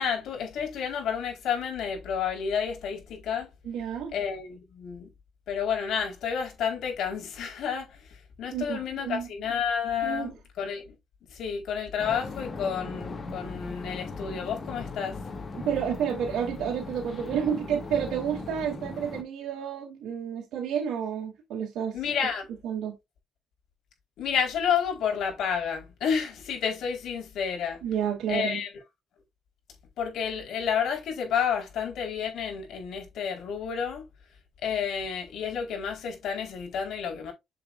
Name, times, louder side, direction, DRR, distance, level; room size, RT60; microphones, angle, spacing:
voice 1, 0.0-3.5 4.1-5.1 5.5-11.0 11.3-15.2 21.9-22.5 24.2-27.8 28.3-28.7 30.0-34.1 34.6-37.3, left 7 dB, 75° left, 4.4 m, -30 dB
voice 2, 3.6-4.1 8.5-9.3 10.0-10.3 15.5-22.0 22.6-23.0 27.8-28.6, right 8 dB, 85° right, 2.7 m, -30 dB
sound 1, 12.0-19.2, left 3 dB, 40° left, 2.6 m, -38 dB
7.6 x 7.2 x 2.6 m
cardioid pair, 90°, 0 cm